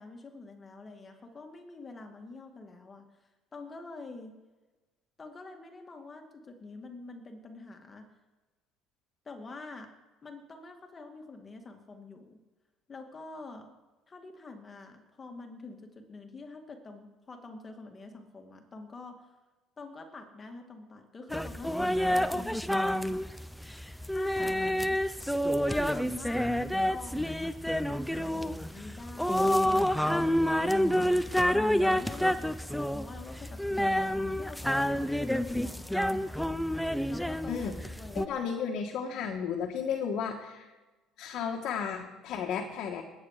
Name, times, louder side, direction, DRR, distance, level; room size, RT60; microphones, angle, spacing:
voice 1, 0.0-4.3 5.2-8.1 9.2-9.9 10.2-12.4 12.9-13.8 14.1-19.3 19.8-23.3 24.1-24.6 25.6-36.0 37.1-38.2, left 3 dB, 30° left, 4 dB, 2.3 m, -46 dB
sound 1, 21.3-38.3, equal, 5° left, 0.7 m, -28 dB
voice 2, 38.1-40.7 41.2-43.0, left 7 dB, 65° left, 1 dB, 1.6 m, -33 dB
20.0 x 8.9 x 5.0 m, 1.2 s
supercardioid pair, 90°, 0 cm